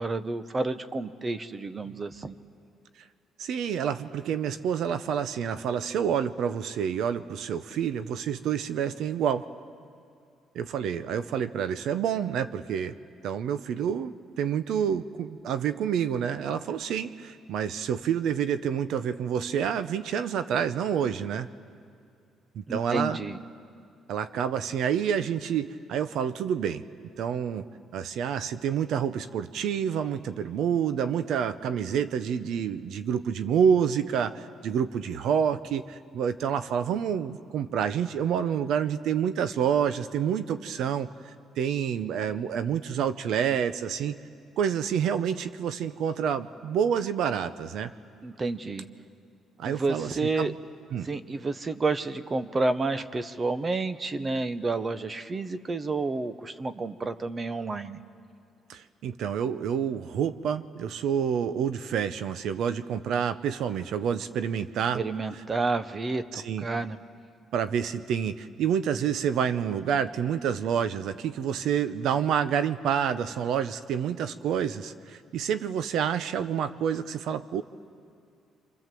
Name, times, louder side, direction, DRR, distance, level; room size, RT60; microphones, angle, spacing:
voice 1, 0.0-2.3 22.7-23.4 48.2-48.9 49.6-50.5 51.0-58.0 64.9-67.0, right 3 dB, 25° right, 12 dB, 0.9 m, -30 dB
voice 2, 3.4-9.5 10.5-13.0 13.2-21.5 22.5-23.2 24.1-26.8 27.2-27.7 27.9-41.1 41.6-44.2 44.6-47.9 49.6-50.1 50.4-50.5 50.9-51.1 58.7-65.0 66.3-66.6 67.5-77.6, right 8 dB, 75° right, 12 dB, 0.8 m, -28 dB
29.0 x 26.0 x 7.7 m, 2.5 s
cardioid pair, 135°, 0 cm